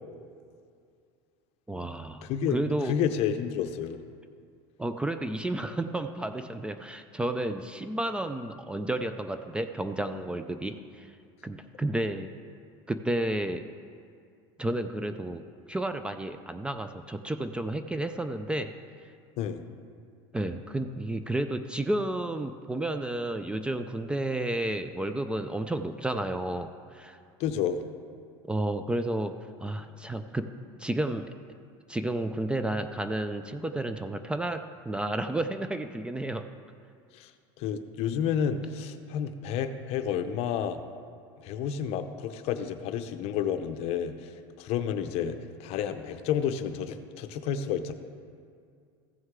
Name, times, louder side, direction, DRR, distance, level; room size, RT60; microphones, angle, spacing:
voice 1, 1.7-3.0 4.8-11.1 11.4-12.3 12.9-13.7 14.6-18.7 20.3-27.2 28.5-29.4 29.6-30.5 30.8-31.3 31.9-36.5, right 1 dB, 10° right, 9 dB, 0.4 m, -31 dB
voice 2, 2.2-2.6 2.9-4.0 19.4-19.6 27.4-27.8 37.1-37.3 37.6-40.8 41.4-44.1 44.6-47.9, left 8 dB, 55° left, 9 dB, 0.7 m, -30 dB
15.0 x 6.3 x 3.7 m, 2.3 s
supercardioid pair, 115°, 12 cm